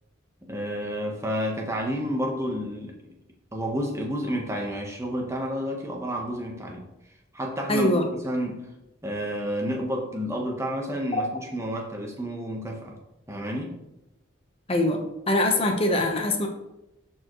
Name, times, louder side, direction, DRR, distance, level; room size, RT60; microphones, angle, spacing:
voice 1, 0.4-3.1 3.5-6.9 7.3-8.7 9.0-13.0 13.3-13.7, equal, 15° right, 1 dB, 1.1 m, -30 dB
voice 2, 7.7-8.0 11.1-11.2 14.7-15.0 15.3-16.5, left 1 dB, 30° left, 3 dB, 1.0 m, -23 dB
12.5 x 4.6 x 3.1 m, 0.91 s
head